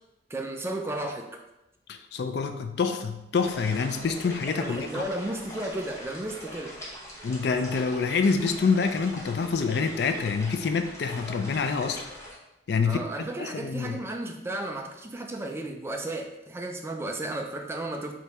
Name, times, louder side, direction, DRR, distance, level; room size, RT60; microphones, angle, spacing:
voice 1, 0.3-1.4 4.6-6.7 12.8-18.1, right 1 dB, 15° right, 3 dB, 0.3 m, -34 dB
voice 2, 1.9-5.0 7.2-12.0 12.7-13.0 13.4-14.0, left 5 dB, 60° left, 7 dB, 0.4 m, -27 dB
sound 1, 3.4-12.4, equal, 15° left, 0.8 m, -42 dB
3.5 x 2.9 x 4.1 m, 0.90 s
head